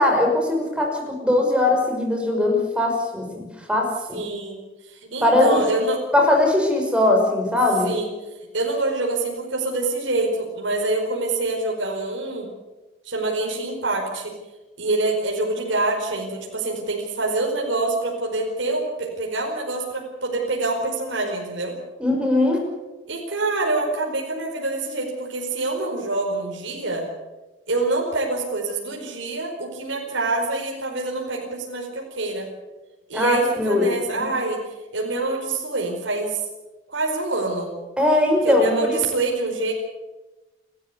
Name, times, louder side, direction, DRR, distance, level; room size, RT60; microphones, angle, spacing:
voice 1, 0.0-4.2 5.2-5.6 6.1-7.9 22.0-22.6 33.1-33.9 34.1-34.3 38.0-39.0, left 2 dB, 5° right, 2 dB, 5.7 m, -20 dB
voice 2, 4.1-4.6 4.9-6.0 7.8-8.1 8.5-12.5 13.0-14.3 14.8-21.7 23.1-27.1 27.7-32.5 33.1-34.6 34.9-36.4 36.9-37.7 38.4-39.7, right 2 dB, 75° right, 0 dB, 4.9 m, -25 dB
29.5 x 13.5 x 8.3 m, 1.1 s
head